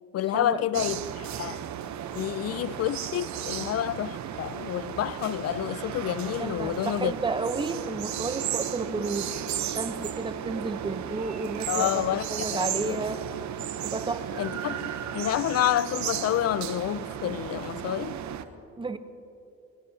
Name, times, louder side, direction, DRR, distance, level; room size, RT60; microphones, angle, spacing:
voice 1, 0.1-1.6 2.1-7.1 11.7-13.0 14.4-18.2, left 12 dB, 55° left, 0.5 m, -29 dB
sound 1, 0.7-18.4, right 9 dB, 70° right, 0.9 m, -34 dB
voice 2, 6.4-9.3 9.6-13.2 13.8-14.4 18.8-19.0, right 3 dB, 15° right, 0.8 m, -32 dB
26.0 x 18.5 x 2.8 m
cardioid pair, 90°, 30 cm